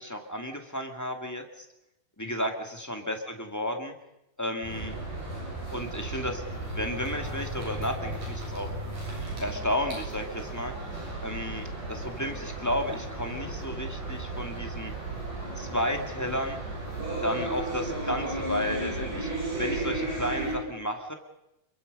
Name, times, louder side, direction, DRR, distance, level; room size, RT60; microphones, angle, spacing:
voice 1, 0.0-1.6 2.2-3.9 4.4-5.0 5.3-5.4 5.7-6.4 6.7-8.7 9.4-10.7 11.2-14.9 15.5-16.6 17.2-19.3 19.6-21.1, equal, 5° left, 3 dB, 1.6 m, -32 dB
sound 1, 4.6-20.5, right 2 dB, 85° right, 9.4 m, -35 dB
29.0 x 23.0 x 5.4 m, 0.87 s
omnidirectional pair, 3.7 m